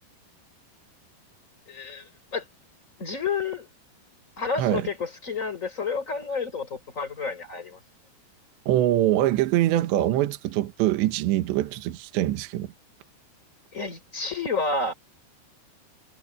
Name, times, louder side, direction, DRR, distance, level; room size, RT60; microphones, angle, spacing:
voice 1, 1.7-2.4 3.0-3.7 4.4-7.8 13.7-14.9, left 4 dB, 15° left, 3.8 m, -30 dB
voice 2, 4.6-4.9 8.7-12.7, right 14 dB, 70° right, 3.2 m, -23 dB
omnidirectional pair, 5.8 m